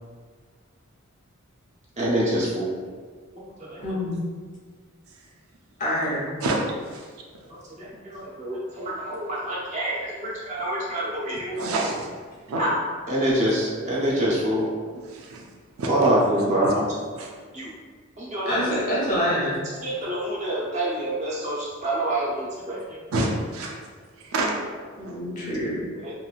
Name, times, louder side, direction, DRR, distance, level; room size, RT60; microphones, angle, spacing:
voice 1, 2.0-2.7 3.7-3.8 7.8-11.6 12.6-14.6 15.9-16.8 17.5-17.7 18.2-18.6 19.8-23.0 26.0-26.1, right 1 dB, 35° right, -7 dB, 0.6 m, -26 dB
voice 2, 3.8-4.2 5.8-6.2 18.4-19.6 25.0-25.9, equal, 35° left, -7 dB, 0.9 m, -26 dB
voice 3, 11.5-12.1 12.5-12.6 15.0-15.4 15.8-16.1 16.6-16.7 17.2-17.3 23.1-23.8 24.2-24.5 24.8-25.2, right 2 dB, 80° right, 0 dB, 0.4 m, -28 dB
3.0 x 2.6 x 2.3 m, 1.6 s
head